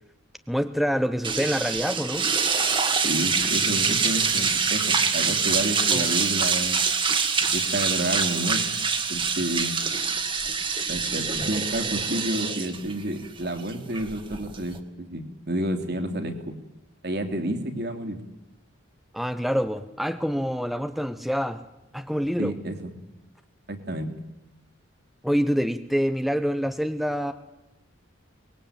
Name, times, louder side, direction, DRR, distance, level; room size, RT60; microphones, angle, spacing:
voice 1, 0.5-2.3 5.9-6.1 19.1-21.6 21.9-22.5 25.2-27.3, equal, ahead, 9 dB, 0.9 m, -26 dB
sound 1, 1.2-14.8, right 5 dB, 25° right, 1.9 m, -25 dB
voice 2, 3.0-6.8 7.5-8.7 9.1-9.7 10.9-16.5 17.0-18.2 22.4-22.9 23.7-24.1, right 1 dB, 55° right, 6 dB, 3.2 m, -30 dB
24.0 x 21.0 x 8.9 m, 0.96 s
head